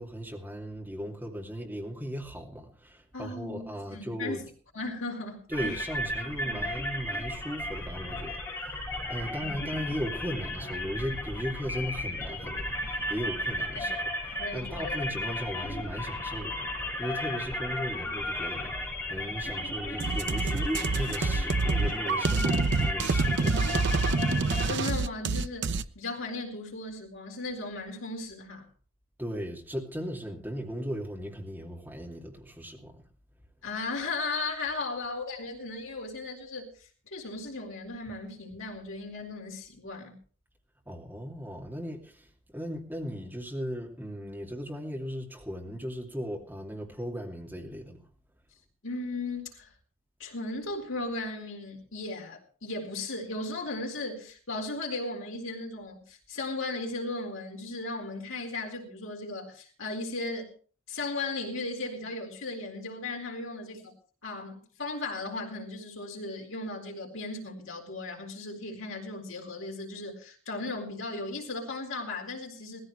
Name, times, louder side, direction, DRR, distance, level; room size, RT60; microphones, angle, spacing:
voice 1, 0.0-4.4 5.5-23.7 29.2-32.9 40.9-42.3 42.5-48.0, equal, 10° right, 2.7 m, -37 dB
voice 2, 3.1-3.6 3.9-4.5 4.7-5.8 6.5-6.6 9.3-9.5 13.7-13.9 14.4-15.0 24.0-28.7 33.6-36.7 37.1-40.2 48.8-49.7 50.2-60.5 60.9-63.9 64.2-72.8, left 2 dB, 70° left, 4.2 m, -36 dB
sound 1, 5.5-24.7, left 1 dB, 15° left, 7.5 m, -34 dB
sound 2, 20.0-25.8, right 3 dB, 55° right, 0.7 m, -27 dB
19.5 x 15.0 x 3.3 m
head